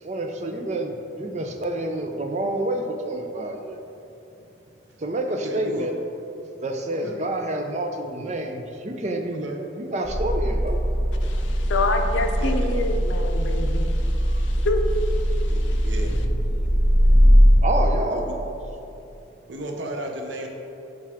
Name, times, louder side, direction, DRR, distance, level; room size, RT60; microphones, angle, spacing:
voice 1, 0.0-3.8 5.0-5.9 6.6-10.8 17.6-18.5, right 1 dB, 35° right, 0.5 m, -28 dB
voice 2, 5.3-5.9 6.9-7.2 9.3-9.6 12.4-12.8 15.5-16.2 18.1-18.4 19.5-20.5, right 1 dB, 85° right, 0.7 m, -34 dB
sound 1, 10.0-17.6, equal, 35° left, 1.3 m, -20 dB
voice 3, 11.2-15.3 15.6-15.9, left 2 dB, 85° left, 0.6 m, -28 dB
7.3 x 4.7 x 3.5 m
head